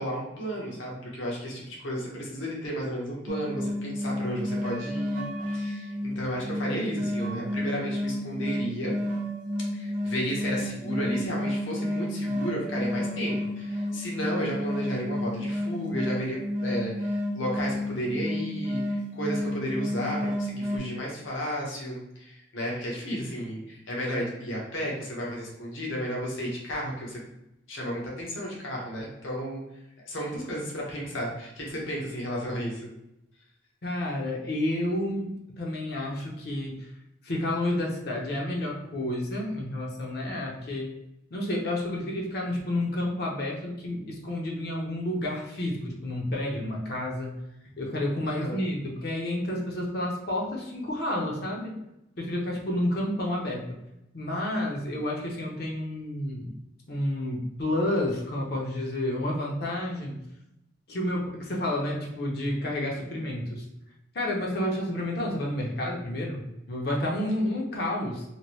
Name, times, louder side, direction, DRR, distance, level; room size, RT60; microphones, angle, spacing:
voice 1, 0.0-8.9 9.7-27.2 27.7-29.6 30.1-32.8 48.3-48.6, equal, 80° left, -3 dB, 0.9 m, -33 dB
sound 1, 3.3-20.8, left 1 dB, 40° right, 0.4 m, -31 dB
voice 2, 33.8-36.9 37.2-40.9 41.3-47.4 47.8-51.8 52.2-53.8 54.1-56.6 56.9-60.2 60.9-63.7 64.1-68.2, left 1 dB, 50° left, -2 dB, 0.6 m, -30 dB
2.9 x 2.6 x 3.0 m, 0.87 s
head